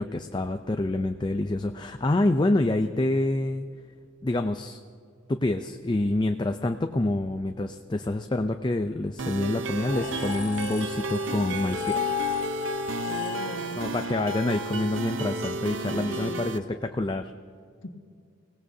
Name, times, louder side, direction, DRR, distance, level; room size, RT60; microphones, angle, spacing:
voice 1, 0.0-3.7 4.2-4.8 5.3-12.0 13.8-17.3, left 2 dB, 25° left, 7 dB, 0.4 m, -27 dB
sound 1, 9.2-16.6, right 3 dB, 75° right, 0.8 m, -33 dB
sound 2, 9.9-15.3, left 9 dB, 40° left, 0.9 m, -34 dB
voice 2, 13.0-13.8 15.3-15.5 15.8-16.5 17.8-17.9, left 1 dB, 80° left, 4 dB, 1.6 m, -39 dB
25.0 x 18.0 x 2.7 m, 2.3 s
head